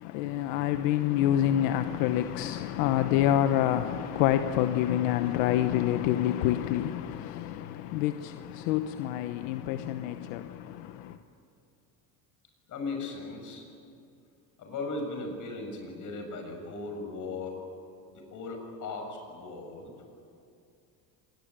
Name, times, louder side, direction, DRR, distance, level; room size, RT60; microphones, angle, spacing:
voice 1, 0.0-11.2, left 12 dB, 90° left, 1.1 m, -27 dB
voice 2, 12.7-13.7 14.6-17.6 18.1-19.9, left 3 dB, 50° left, 7.1 m, -37 dB
26.0 x 21.0 x 8.9 m
cardioid pair, 130°, 39 cm